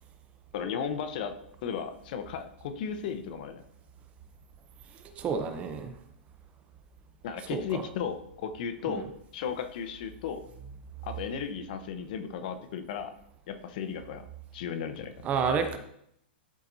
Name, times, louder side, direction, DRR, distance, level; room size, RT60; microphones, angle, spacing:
voice 1, 0.5-3.6 7.2-9.1 9.3-10.5 11.0-13.1 13.5-14.2 14.5-15.1, left 7 dB, 55° left, 9 dB, 0.8 m, -35 dB
voice 2, 5.0-5.9 7.5-7.8 8.9-9.0 15.2-15.8, right 6 dB, 25° right, 8 dB, 0.6 m, -30 dB
12.0 x 4.3 x 2.7 m, 0.71 s
hypercardioid pair, 150°, 6 cm